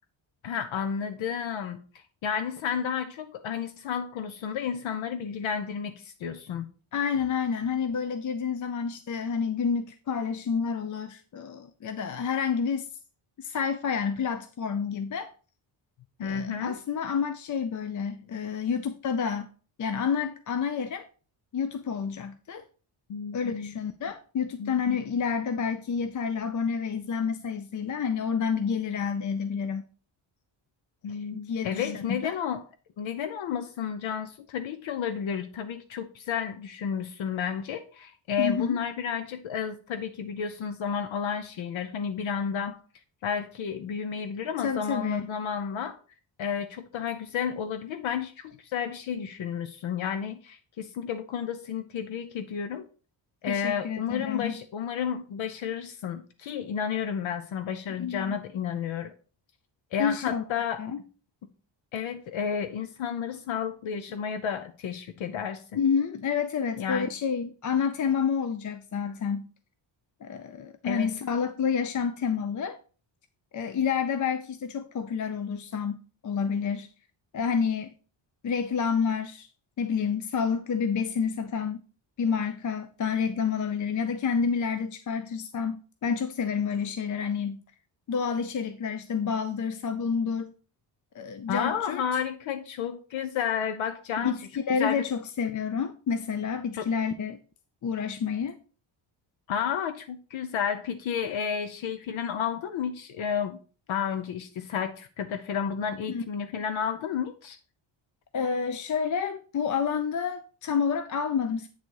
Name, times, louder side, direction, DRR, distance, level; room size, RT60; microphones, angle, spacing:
voice 1, 0.4-1.8 2.2-6.7 16.2-16.8 23.1-23.7 24.6-25.1 31.0-32.6 33.0-42.8 43.2-46.0 46.4-52.9 53.4-59.1 59.9-60.8 61.9-65.8 66.8-67.1 70.8-71.1 91.5-94.4 94.7-95.0 96.7-96.8 99.5-103.6 103.9-107.6, left 7 dB, 75° left, 0.8 m, -31 dB
voice 2, 6.9-12.9 13.4-15.3 16.2-19.5 19.8-21.1 21.5-22.6 23.3-29.8 31.3-32.3 38.4-38.8 44.6-45.2 53.5-54.5 58.0-58.4 60.0-60.4 60.8-61.0 65.8-69.5 70.2-72.8 73.5-76.9 77.3-77.9 78.4-79.5 79.8-81.8 82.2-87.6 88.1-90.5 91.1-92.0 94.2-97.4 97.8-98.6 106.1-106.2 108.3-111.7, left 6 dB, 40° left, 0.5 m, -29 dB
8.6 x 4.0 x 4.6 m
wide cardioid pair, 155°, 47 cm